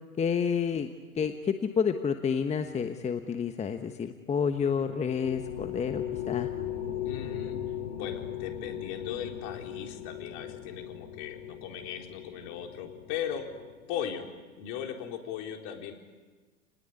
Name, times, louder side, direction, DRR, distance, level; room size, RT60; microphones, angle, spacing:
voice 1, 0.2-0.9 1.1-6.5, left 6 dB, 15° left, 8 dB, 1.2 m, -29 dB
sound 1, 4.4-14.2, left 10 dB, 65° left, 4.6 m, -38 dB
voice 2, 7.0-7.6 7.9-13.5 13.9-14.3 14.6-15.9, left 9 dB, 45° left, 3 dB, 4.1 m, -38 dB
29.5 x 20.0 x 9.8 m, 1.4 s
figure-of-eight pair, 100°, 41 cm